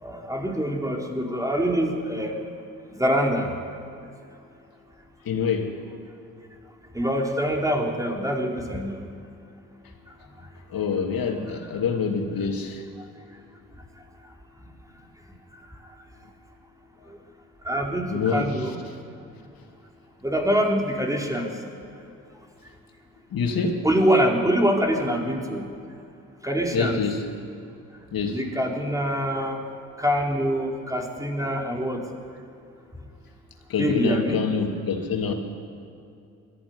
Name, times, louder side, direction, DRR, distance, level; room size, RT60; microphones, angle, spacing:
voice 1, 0.0-2.3 3.0-3.5 6.9-9.0 17.6-18.7 20.2-21.5 23.8-25.6 26.4-27.0 28.3-29.6 30.0-32.0 33.8-34.4, equal, 10° right, 0 dB, 4.5 m, -24 dB
voice 2, 5.2-5.7 10.7-12.8 18.1-18.7 23.3-23.8 26.7-27.2 28.1-28.4 33.7-35.3, left 5 dB, 60° left, 3 dB, 2.8 m, -26 dB
21.0 x 14.0 x 9.7 m, 2.6 s
hypercardioid pair, 50°, 39 cm